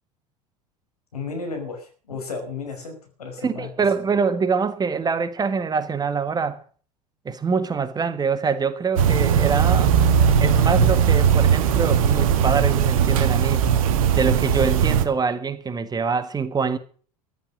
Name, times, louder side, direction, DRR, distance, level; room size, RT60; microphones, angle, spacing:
voice 1, 1.1-3.7, left 4 dB, 75° left, 5.4 m, -33 dB
voice 2, 3.4-6.6 7.2-9.9 10.4-13.7 14.1-16.8, right 5 dB, 20° right, 1.5 m, -24 dB
sound 1, 9.0-15.1, right 8 dB, 60° right, 1.9 m, -18 dB
14.5 x 12.0 x 6.4 m
figure-of-eight pair, 75°, 20 cm